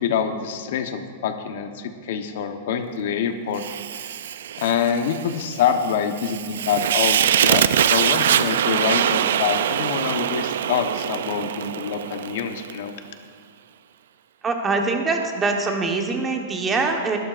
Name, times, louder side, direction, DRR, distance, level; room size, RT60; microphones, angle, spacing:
voice 1, 0.0-3.7 4.0-4.1 4.6-7.6 7.9-12.9, left 7 dB, 65° left, 7 dB, 1.0 m, -25 dB
Fire, 3.6-12.8, right 10 dB, 80° right, 0.4 m, -23 dB
voice 2, 14.4-17.2, right 3 dB, 15° right, 3 dB, 1.2 m, -23 dB
21.5 x 12.5 x 2.5 m, 2.1 s
supercardioid pair, 155°, 0 cm